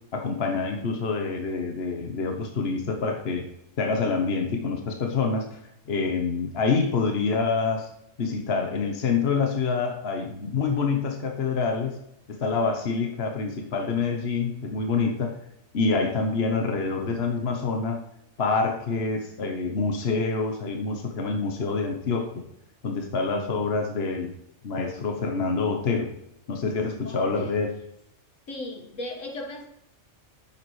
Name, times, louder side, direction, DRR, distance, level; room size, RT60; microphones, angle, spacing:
voice 1, 0.1-3.4 3.8-5.6 5.9-7.9 8.2-12.0 12.3-15.4 15.7-18.0 18.4-22.4 22.8-24.3 24.6-26.1 26.5-27.7, left 4 dB, 55° left, 3 dB, 1.3 m, -26 dB
voice 2, 27.0-27.6 28.5-29.6, left 1 dB, 80° left, 1 dB, 2.0 m, -37 dB
9.8 x 7.1 x 3.2 m, 0.79 s
omnidirectional pair, 1.3 m